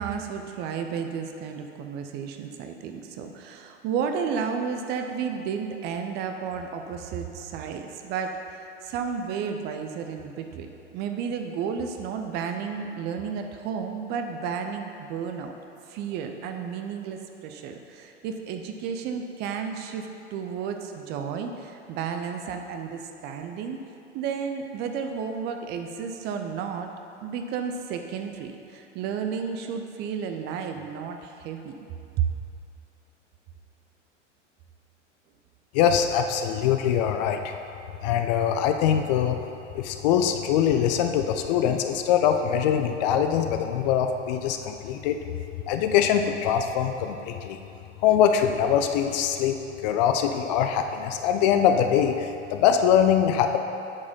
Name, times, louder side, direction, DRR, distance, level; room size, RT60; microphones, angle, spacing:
voice 1, 0.0-15.5 15.9-23.8 24.1-26.9 27.2-31.9 32.2-32.3, right 6 dB, 30° right, 5 dB, 0.5 m, -32 dB
voice 2, 35.7-37.5 38.0-39.4 39.7-45.2 45.7-47.6 48.0-53.6, left 8 dB, 35° left, 6 dB, 0.4 m, -23 dB
8.7 x 4.8 x 5.5 m, 2.8 s
figure-of-eight pair, 90°, 37 cm